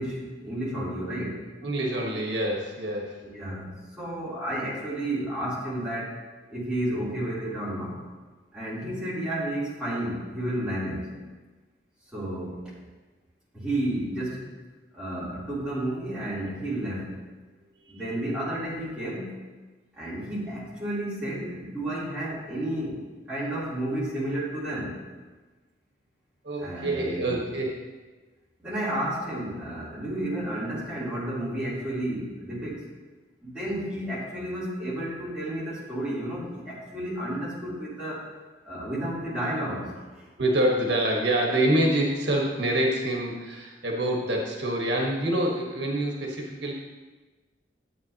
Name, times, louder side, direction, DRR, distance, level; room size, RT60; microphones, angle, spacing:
voice 1, 0.0-1.5 3.2-6.1 6.5-8.0 8.5-11.2 12.1-12.6 13.5-14.5 14.9-17.2 17.9-19.3 20.0-23.0 23.3-25.0 26.6-27.4 28.6-32.9 33.4-38.3 38.6-40.3, right 1 dB, 5° right, -10 dB, 3.3 m, -31 dB
voice 2, 1.6-3.2 14.2-14.4 18.0-18.4 26.4-27.7 40.4-46.7, right 1 dB, 80° right, -1 dB, 1.4 m, -26 dB
12.0 x 8.3 x 2.9 m, 1.3 s
head